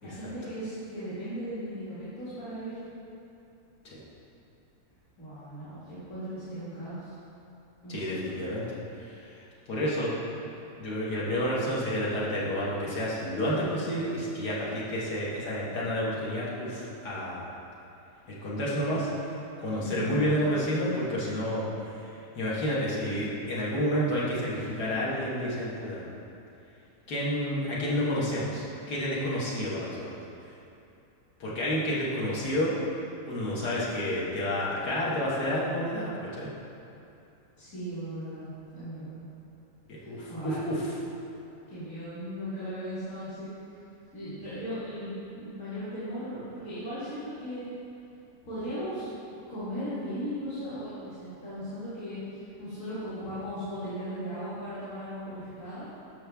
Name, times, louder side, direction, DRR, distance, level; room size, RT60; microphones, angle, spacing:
voice 1, 0.0-2.8 5.2-7.1 7.8-8.2 19.8-20.1 37.6-39.2 40.0-40.6 41.7-43.5 44.1-47.7 48.4-49.1 49.5-55.9, equal, 50° left, -14 dB, 2.7 m, -37 dB
voice 2, 7.9-9.4 9.7-10.5 10.8-17.4 18.4-19.1 19.6-21.7 22.0-26.1 27.1-30.2 31.4-32.7 33.3-36.5 39.9-41.0, equal, 80° left, -7 dB, 2.1 m, -30 dB
13.0 x 5.4 x 3.5 m, 2.7 s
omnidirectional pair, 1.7 m